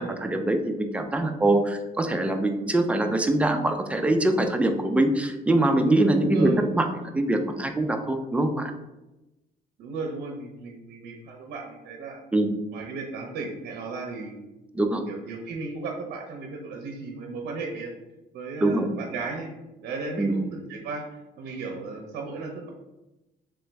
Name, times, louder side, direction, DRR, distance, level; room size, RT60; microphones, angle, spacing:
voice 1, 0.0-6.9 7.1-8.7 12.3-12.5 14.7-15.0 18.6-18.9 20.2-20.3, right 1 dB, 5° right, 5 dB, 0.4 m, -23 dB
voice 2, 6.2-6.6 9.8-12.2 12.7-14.5 15.1-17.9 18.3-19.5 19.8-22.7, right 3 dB, 70° right, 1 dB, 0.6 m, -35 dB
3.4 x 3.0 x 3.3 m, 0.99 s
cardioid pair, 110°, 17 cm